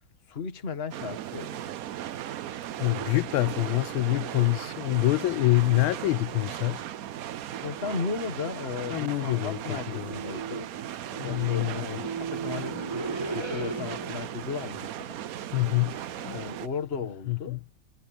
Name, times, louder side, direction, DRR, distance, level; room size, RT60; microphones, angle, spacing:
voice 1, 0.3-1.6 5.7-5.9 7.6-10.7 11.2-15.2 16.3-17.6, left 5 dB, 30° left, 1.7 m, -35 dB
sound 1, 0.9-16.7, right 11 dB, 70° right, 0.8 m, -37 dB
voice 2, 2.8-6.8 8.9-10.1 11.1-12.0 15.3-16.4 17.3-17.6, left 19 dB, 85° left, 1.4 m, -26 dB
sound 2, 7.5-14.3, right 4 dB, 15° right, 2.1 m, -38 dB
omnidirectional pair, 2.2 m